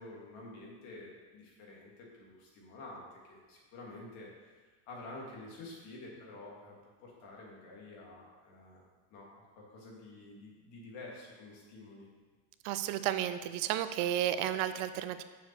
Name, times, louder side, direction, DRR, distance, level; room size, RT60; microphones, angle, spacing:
voice 1, 0.0-6.7 7.0-8.8 9.1-12.1, left 2 dB, 65° left, -3 dB, 2.6 m, -49 dB
voice 2, 12.6-15.2, right 11 dB, 70° right, 11 dB, 0.6 m, -32 dB
6.9 x 5.6 x 6.9 m, 1.4 s
cardioid pair, 175°, 47 cm